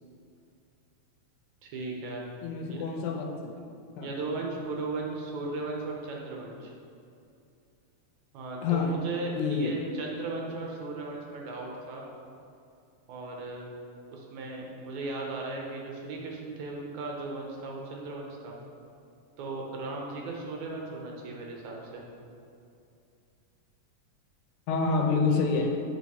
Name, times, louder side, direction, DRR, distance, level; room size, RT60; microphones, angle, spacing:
voice 1, 1.6-2.2 2.7-2.8 4.0-6.7 8.3-12.1 13.1-13.7 14.1-18.6 19.4-22.0, right 3 dB, 75° right, -1 dB, 2.2 m, -36 dB
voice 2, 2.4-3.5 4.0-4.1 8.6-9.0 9.4-9.8 24.7-25.8, left 4 dB, 85° left, 4 dB, 2.0 m, -27 dB
8.0 x 4.2 x 4.1 m, 2.5 s
omnidirectional pair, 3.5 m